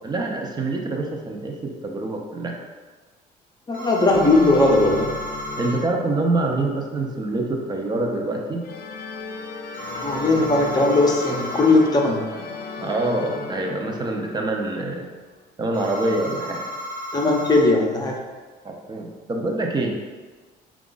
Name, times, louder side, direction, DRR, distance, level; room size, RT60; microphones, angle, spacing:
voice 1, 0.0-2.5 5.6-8.6 12.8-15.1 15.6-16.6 18.6-20.0, right 2 dB, 25° right, 1 dB, 0.7 m, -25 dB
voice 2, 3.7-5.1 9.9-12.3 17.1-18.2, left 2 dB, 25° left, 0 dB, 0.7 m, -18 dB
sound 1, 3.7-5.8 9.7-11.8 15.7-17.6, equal, 85° right, 1.1 m, -33 dB
sound 2, 4.1-6.8 8.6-14.9, left 3 dB, 65° left, 0.5 m, -34 dB
4.6 x 2.4 x 3.9 m, 1.4 s
cardioid pair, 110°, 17 cm